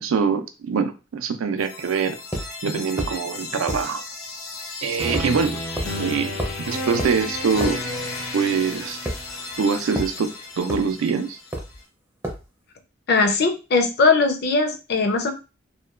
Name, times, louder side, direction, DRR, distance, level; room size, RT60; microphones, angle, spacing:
voice 1, 0.0-2.2 2.6-4.0 4.8-5.6 6.0-6.3 6.6-7.8 8.3-9.0 9.6-11.4, right 5 dB, 80° right, 8 dB, 0.4 m, -24 dB
sound 1, 1.6-11.5, left 2 dB, 90° left, 0.7 m, -33 dB
sound 2, 2.3-2.5 3.0-3.2 3.7-3.9 5.1-5.3 5.8-5.9 6.4-6.6 7.0-7.2 7.6-7.8 9.0-9.6 9.9-10.1 10.7-10.9 11.5-11.8 12.2-12.4, equal, 10° right, 0.4 m, -29 dB
voice 2, 13.1-15.3, left 3 dB, 50° left, 6 dB, 0.4 m, -19 dB
2.8 x 2.2 x 2.4 m, 0.31 s
head